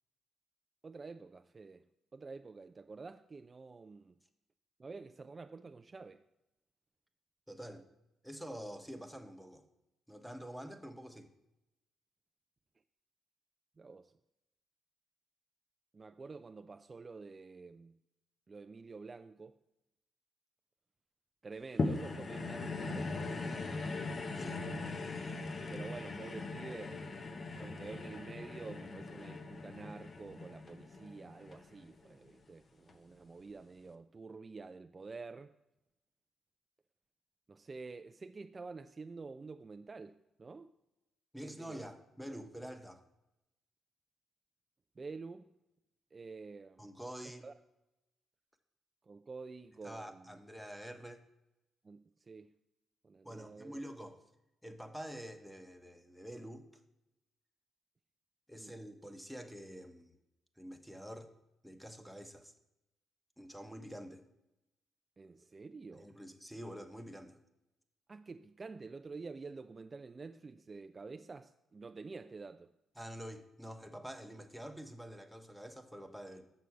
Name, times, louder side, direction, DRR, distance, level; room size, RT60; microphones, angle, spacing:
voice 1, 0.8-1.9 2.1-4.1 4.8-6.2 13.8-14.1 15.9-18.0 18.5-19.5 21.4-23.4 25.7-27.1 27.5-35.5 37.5-40.7 41.4-41.9 45.0-45.5 46.1-46.9 47.4-47.5 49.1-50.4 51.8-52.5 53.0-53.8 58.5-58.7 65.2-66.1 68.1-72.7, right 4 dB, 35° right, 0.3 m, -49 dB
voice 2, 7.5-7.9 8.2-9.6 10.1-11.3 24.3-24.6 41.3-43.0 46.8-47.5 49.8-51.2 53.2-54.2 54.6-56.7 58.5-60.2 60.6-61.3 61.6-62.5 63.4-64.2 65.9-67.4 73.0-76.4, equal, ahead, 1.0 m, -47 dB
sound 1, 21.8-32.3 32.9-33.0, left 3 dB, 45° left, 0.9 m, -40 dB
6.7 x 6.2 x 5.8 m
supercardioid pair, 60°, 0 cm